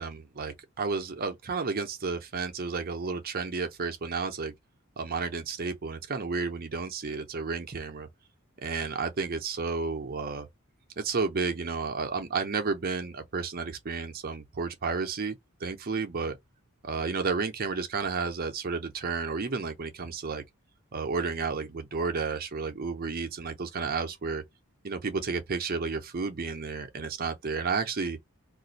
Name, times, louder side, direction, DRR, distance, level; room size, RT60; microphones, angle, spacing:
voice 1, 0.0-4.5 5.0-8.1 8.6-10.5 11.0-15.4 15.6-16.4 16.8-20.4 20.9-24.4 24.8-28.2, right 4 dB, 40° right, 0.6 m, -32 dB
2.5 x 2.3 x 4.0 m
head